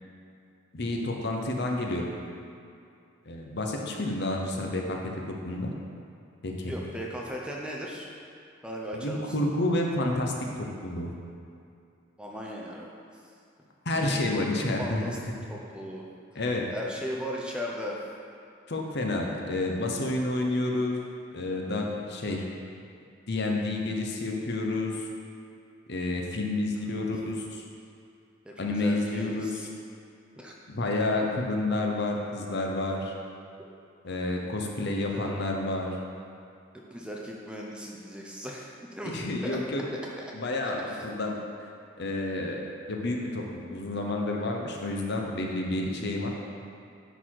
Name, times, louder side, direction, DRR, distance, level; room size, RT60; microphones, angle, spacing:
voice 1, 0.7-2.1 3.3-5.0 5.3-5.7 6.4-6.7 8.9-11.1 13.8-15.0 16.3-16.6 18.7-21.0 21.3-22.4 23.3-25.1 25.9-27.6 28.6-29.5 30.7-33.1 34.0-36.0 39.0-39.8 40.3-41.7 42.0-42.6 42.9-46.3, left 2 dB, 55° left, 0 dB, 0.9 m, -29 dB
voice 2, 6.7-8.1 8.6-9.4 12.2-12.9 13.1-13.2 13.9-15.2 15.5-16.0 16.7-18.0 26.9-27.1 28.4-29.7 30.4-30.5 35.0-35.3 36.7-39.1 39.4-39.6 40.9-41.0, equal, 5° right, -2 dB, 0.6 m, -37 dB
10.0 x 4.1 x 4.7 m, 2.5 s
head